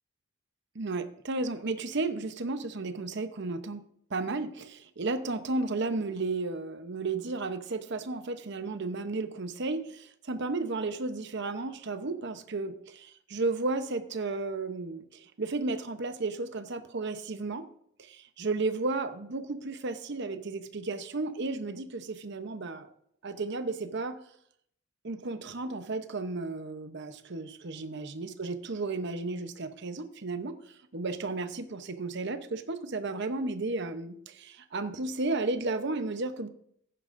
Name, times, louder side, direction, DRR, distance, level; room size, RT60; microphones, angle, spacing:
voice 1, 0.7-3.8 4.1-17.6 18.0-22.9 23.2-24.2 25.0-30.5 30.9-36.5, right 3 dB, 60° right, 9 dB, 0.8 m, -33 dB
15.0 x 10.0 x 2.6 m, 0.67 s
head